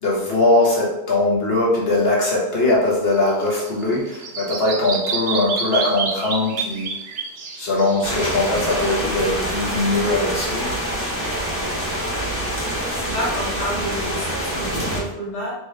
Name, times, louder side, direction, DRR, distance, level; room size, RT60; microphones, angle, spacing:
voice 1, 0.0-6.9 7.6-10.8, left 2 dB, 60° left, -4 dB, 1.5 m, -20 dB
Bird vocalization bird call bird song, 3.1-9.0, right 4 dB, 50° right, 0.7 m, -29 dB
sound 1, 8.0-15.0, equal, 10° left, 1.0 m, -26 dB
voice 2, 12.5-15.5, equal, 80° left, -6 dB, 1.9 m, -30 dB
4.3 x 3.3 x 3.3 m, 0.92 s
omnidirectional pair, 1.2 m